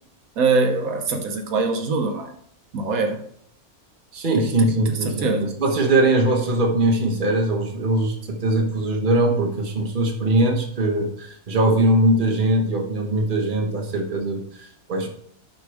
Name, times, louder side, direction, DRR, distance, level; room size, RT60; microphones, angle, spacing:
voice 1, 0.4-2.3 2.7-3.2 4.4-4.5 5.0-5.5, right 4 dB, 75° right, 4 dB, 1.3 m, -23 dB
voice 2, 4.1-15.1, right 1 dB, 35° right, 2 dB, 1.3 m, -21 dB
11.0 x 4.8 x 3.5 m, 0.65 s
omnidirectional pair, 1.5 m